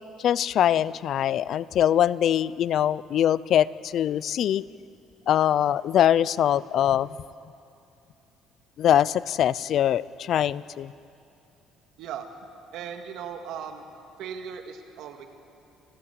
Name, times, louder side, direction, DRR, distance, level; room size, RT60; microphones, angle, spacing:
voice 1, 0.2-4.6 5.3-7.1 8.8-10.9, left 10 dB, 55° left, 20 dB, 0.5 m, -23 dB
voice 2, 12.7-13.8 14.2-15.3, right 7 dB, 75° right, 5 dB, 1.9 m, -37 dB
29.0 x 15.0 x 8.1 m, 2.8 s
cardioid pair, 125°, 0 cm